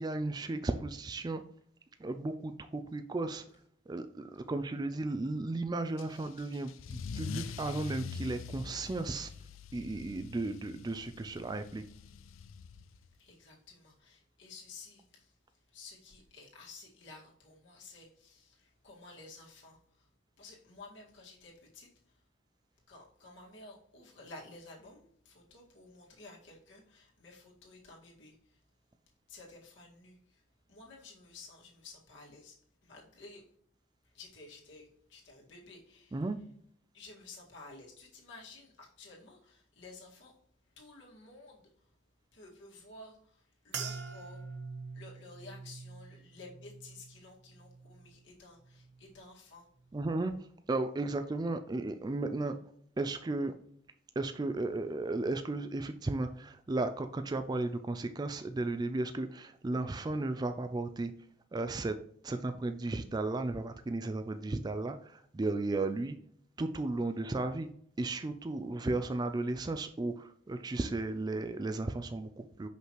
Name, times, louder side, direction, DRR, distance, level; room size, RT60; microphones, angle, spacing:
voice 1, 0.0-1.4 2.0-3.4 3.9-9.3 9.7-11.8 36.1-36.4 49.9-50.3 50.7-52.5 53.0-53.5 54.2-61.1 61.5-62.0 62.2-66.2 66.6-67.7 68.0-72.7, right 2 dB, 20° right, 8 dB, 0.3 m, -34 dB
Car / Engine starting / Accelerating revving vroom, 6.0-13.1, left 5 dB, 85° left, 0.4 m, -44 dB
voice 2, 13.2-20.1 20.4-22.2 22.9-28.6 29.3-30.4 30.7-33.5 34.0-36.3 36.9-40.4 40.6-41.9 42.3-44.6 44.9-49.7, left 3 dB, 65° left, -3 dB, 2.0 m, -53 dB
sound 1, 43.7-48.3 48.6-49.2 49.8-50.1, right 5 dB, 60° right, 0.8 m, -45 dB
6.0 x 5.5 x 3.1 m, 0.63 s
head